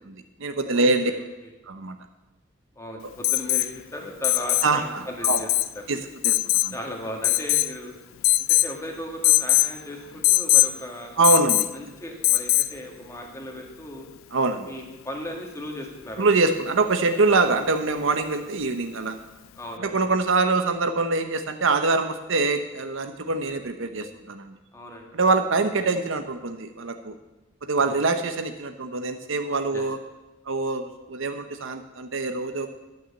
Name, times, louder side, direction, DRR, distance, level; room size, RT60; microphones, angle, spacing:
voice 1, 0.1-1.1 1.7-2.0 4.6-5.4 5.9-6.4 6.6-6.7 11.2-11.9 14.3-14.7 16.2-19.2 19.8-24.6 25.1-27.2 27.6-30.0 30.5-32.7, right 3 dB, 65° right, 7 dB, 0.9 m, -24 dB
voice 2, 0.7-1.2 2.7-5.5 6.7-7.9 8.4-11.1 11.7-14.1 14.6-16.3 19.6-20.0 24.7-25.1 27.8-28.0 29.7-29.8, left 1 dB, 15° left, 1 dB, 1.8 m, -36 dB
Alarm, 3.2-3.7 4.2-4.7 5.2-5.7 6.2-6.7 7.2-7.8 8.2-8.7 9.2-9.7 10.2-10.7 11.2-11.7 12.2-12.7 14.5-14.6, left 17 dB, 70° left, 0.3 m, -20 dB
11.5 x 6.3 x 8.3 m, 1.0 s
head